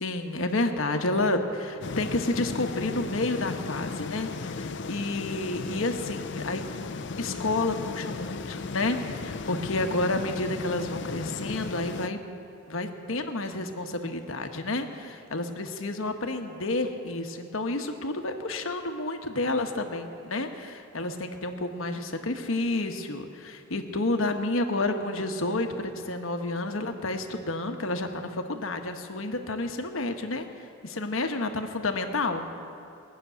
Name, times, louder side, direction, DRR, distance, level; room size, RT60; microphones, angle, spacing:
voice 1, 0.0-6.6 7.2-12.2 12.7-30.5 30.8-32.5, left 2 dB, 75° left, 5 dB, 1.2 m, -30 dB
sound 1, 1.8-12.1, left 4 dB, 55° left, 0.5 m, -36 dB
20.0 x 6.8 x 9.3 m, 2.6 s
head